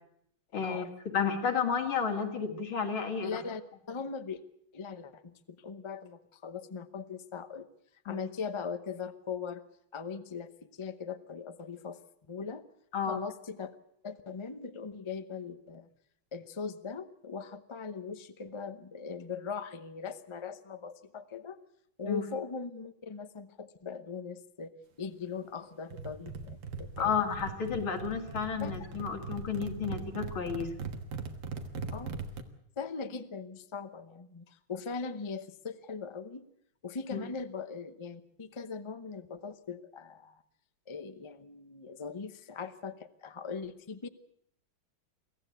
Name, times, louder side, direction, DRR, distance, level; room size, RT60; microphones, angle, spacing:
voice 1, 0.5-0.8 1.1-3.3 8.1-8.2 12.9-13.2 22.1-22.2 27.0-30.7 37.1-37.2, left 6 dB, 80° left, 4 dB, 3.0 m, -31 dB
voice 2, 3.2-3.6 3.9-4.4 4.7-7.7 8.0-9.6 9.9-12.0 12.3-12.6 13.1-13.7 14.0-15.9 16.3-21.6 22.0-24.7 25.0-27.1 28.6-28.7 31.9-32.1 32.8-36.4 36.8-40.4 40.9-44.1, left 5 dB, 35° left, 10 dB, 0.4 m, -40 dB
sound 1, 25.9-32.4, right 4 dB, 70° right, 2.2 m, -40 dB
24.5 x 15.0 x 8.2 m, 0.72 s
omnidirectional pair, 2.2 m